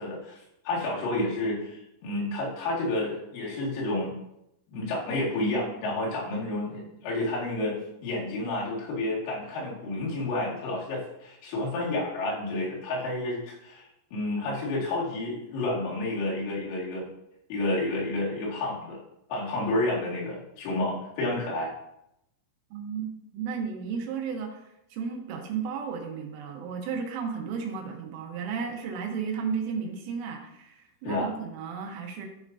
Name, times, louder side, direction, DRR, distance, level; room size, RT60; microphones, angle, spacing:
voice 1, 0.0-4.2 4.7-7.8 8.0-17.1 17.5-19.0 19.3-21.7 31.0-31.3, left 2 dB, 90° left, -5 dB, 4.9 m, -30 dB
voice 2, 22.7-24.6 24.9-32.3, right 6 dB, 75° right, 2 dB, 3.4 m, -34 dB
14.0 x 5.8 x 2.7 m, 0.83 s
omnidirectional pair, 5.9 m